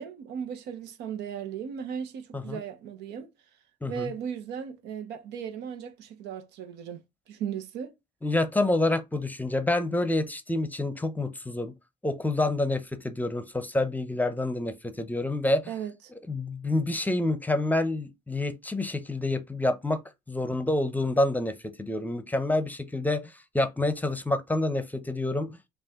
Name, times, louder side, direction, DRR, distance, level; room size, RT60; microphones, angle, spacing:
voice 1, 0.0-3.3 3.9-7.0 7.3-7.9 15.7-15.9, right 8 dB, 85° right, 0.9 m, -36 dB
voice 2, 8.2-11.7 12.0-15.7 16.3-20.0 20.3-25.6, left 2 dB, 10° left, 0.7 m, -28 dB
5.3 x 2.5 x 3.6 m
cardioid pair, 110°, 17 cm